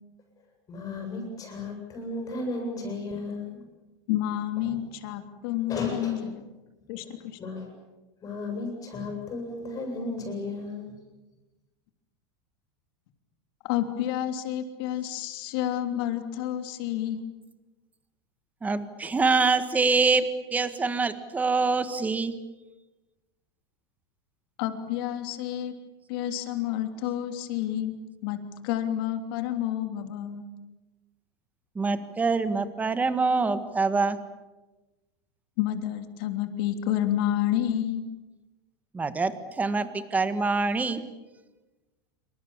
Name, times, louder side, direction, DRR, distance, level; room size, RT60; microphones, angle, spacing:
voice 1, 0.7-3.6 4.7-4.8 5.7-6.2 7.4-7.7 8.2-10.9, left 2 dB, 25° left, 3 dB, 7.9 m, -34 dB
voice 2, 4.1-6.4 6.9-7.4 13.7-17.3 24.6-25.7 26.1-27.9 28.2-28.4 28.6-30.5 35.6-38.0, left 11 dB, 60° left, 6 dB, 3.2 m, -29 dB
voice 3, 18.6-22.3 31.7-34.2 38.9-41.0, right 4 dB, 10° right, 11 dB, 1.6 m, -25 dB
27.0 x 25.5 x 7.3 m, 1.1 s
supercardioid pair, 150°, 14 cm